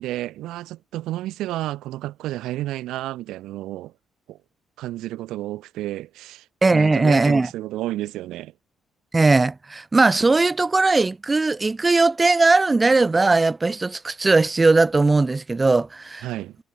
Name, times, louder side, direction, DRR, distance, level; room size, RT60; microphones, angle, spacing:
voice 1, 0.0-3.9 4.3-4.4 4.8-6.5 6.7-8.5 16.2-16.6, right 15 dB, 90° right, 1.1 m, -31 dB
voice 2, 6.6-7.5 9.1-16.3, right 3 dB, 25° right, 0.4 m, -19 dB
cardioid pair, 90°, 0 cm